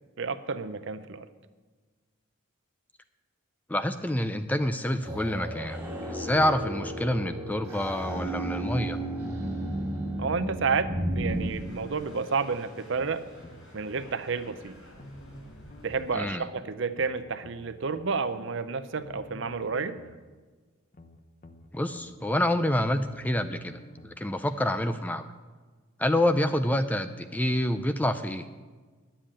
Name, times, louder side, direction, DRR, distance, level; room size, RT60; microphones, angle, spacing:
voice 1, 0.2-1.3 10.2-10.9 11.1-13.2 13.7-14.8 15.8-20.0, right 4 dB, 55° right, 13 dB, 0.6 m, -30 dB
voice 2, 3.7-9.0 16.1-16.4 21.7-25.3 26.0-28.5, left 1 dB, 5° left, 10 dB, 0.4 m, -27 dB
sound 1, 5.0-11.5, right 1 dB, 10° right, 2.1 m, -33 dB
sound 2, 9.0-10.2 11.0-12.2 12.9-14.2 15.0-16.2 16.9-18.2 19.0-20.2 20.9-22.2 23.0-24.2 24.9-25.0, left 1 dB, 35° left, 0.7 m, -49 dB
sound 3, 11.1-16.3, equal, 70° left, 4.6 m, -51 dB
10.0 x 7.5 x 8.8 m, 1.4 s
head